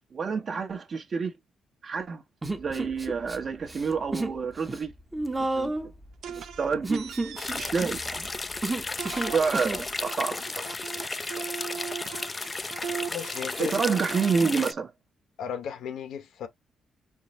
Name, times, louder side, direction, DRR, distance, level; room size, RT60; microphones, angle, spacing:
voice 1, 0.1-1.3 1.8-2.2 2.5-4.9 5.5-5.7 6.3-7.0 7.5-8.3 9.1-10.7 13.6-14.9, right 5 dB, 45° right, 1.0 m, -28 dB
Human voice, 2.4-3.4 3.6-4.4 4.7-9.9, right 2 dB, 15° right, 0.8 m, -32 dB
sound 1, 6.2-8.6 9.0-14.7, right 8 dB, 75° right, 0.7 m, -39 dB
sound 2, 7.4-14.7, left 3 dB, 25° left, 0.3 m, -34 dB
voice 2, 13.1-13.8 15.4-16.5, left 7 dB, 75° left, 0.9 m, -35 dB
4.7 x 2.0 x 4.2 m
cardioid pair, 90°, 0 cm